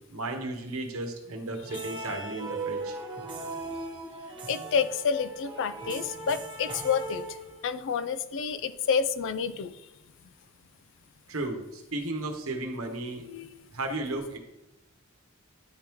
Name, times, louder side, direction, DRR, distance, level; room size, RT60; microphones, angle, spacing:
voice 1, 0.1-3.0 11.3-13.3 13.7-14.4, right 2 dB, 75° right, 4 dB, 1.0 m, -34 dB
sound 1, 1.6-7.9, right 3 dB, 25° right, 1.0 m, -38 dB
voice 2, 4.5-7.2 7.6-9.7 13.3-13.5, left 6 dB, 60° left, 14 dB, 0.4 m, -29 dB
9.7 x 3.5 x 3.0 m, 0.96 s
head